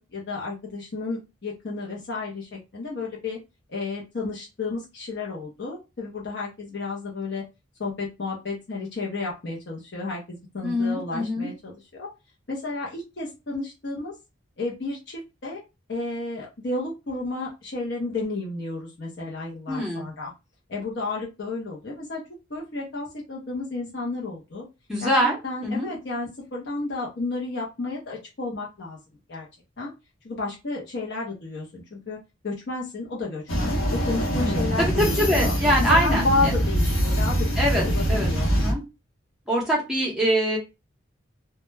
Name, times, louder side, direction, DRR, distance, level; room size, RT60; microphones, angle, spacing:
voice 1, 0.0-3.4 3.7-7.4 7.8-12.1 12.5-14.1 14.6-15.6 15.9-20.3 20.7-22.2 22.5-24.7 25.0-25.1 25.4-29.0 29.3-29.5 29.8-29.9 30.2-32.2 32.4-35.6 36.0-37.5 37.7-38.5, left 3 dB, 55° left, -3 dB, 0.6 m, -32 dB
voice 2, 10.6-11.5 19.7-20.0 24.9-25.4 25.6-25.9 34.4-36.3 37.6-37.8 38.1-38.8 39.5-40.6, equal, ahead, -5 dB, 0.7 m, -24 dB
sound 1, 33.5-38.7, equal, 80° left, 0.9 m, -24 dB
2.1 x 2.1 x 3.2 m, 0.26 s
head